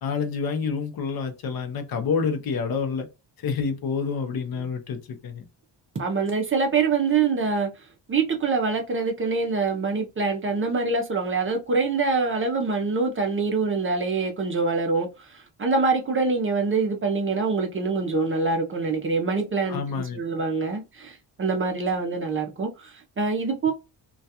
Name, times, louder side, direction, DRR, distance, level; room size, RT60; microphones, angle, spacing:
voice 1, 0.0-3.1 3.4-5.5 19.7-20.2, left 5 dB, 55° left, 0.6 m, -28 dB
voice 2, 5.9-7.7 8.1-19.8 20.1-23.7, right 4 dB, 30° right, 0.5 m, -25 dB
2.3 x 2.2 x 2.7 m
cardioid pair, 125°, 44 cm